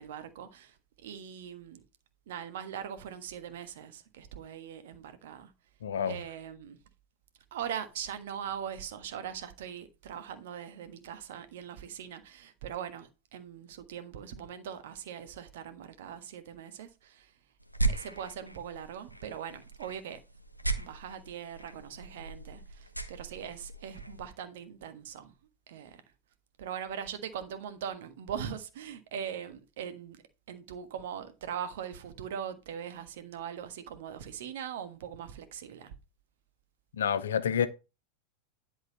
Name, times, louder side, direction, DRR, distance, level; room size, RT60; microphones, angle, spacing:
voice 1, 0.0-1.8 2.3-5.5 6.1-6.8 7.5-17.3 17.9-20.2 20.8-25.3 25.7-26.0 26.6-30.2 30.5-35.9, right 8 dB, 55° right, 1.4 m, -41 dB
voice 2, 5.8-6.2 36.9-37.7, left 8 dB, 65° left, 0.8 m, -28 dB
sound 1, 17.6-24.3, right 3 dB, 90° right, 0.9 m, -37 dB
10.5 x 4.0 x 5.3 m
figure-of-eight pair, 90°, 0 cm